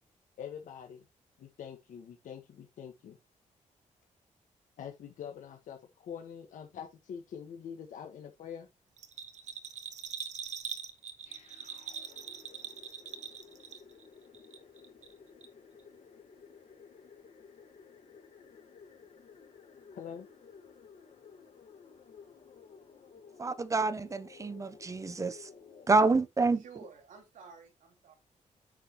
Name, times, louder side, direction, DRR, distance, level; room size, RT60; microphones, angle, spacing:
voice 1, 0.4-1.0 1.4-3.2 4.8-8.7 20.0-20.3, left 8 dB, 90° left, 1.7 m, -44 dB
Bell, 9.0-14.1 14.3-15.1 15.4-15.5, right 7 dB, 65° right, 1.1 m, -42 dB
sound 1, 11.2-26.2, left 5 dB, 60° left, 1.9 m, -55 dB
voice 2, 23.4-25.5 25.9-26.6, right 3 dB, 25° right, 0.8 m, -28 dB
voice 3, 26.5-28.1, right 5 dB, 80° right, 3.2 m, -52 dB
9.3 x 6.3 x 3.2 m
cardioid pair, 120°, 13 cm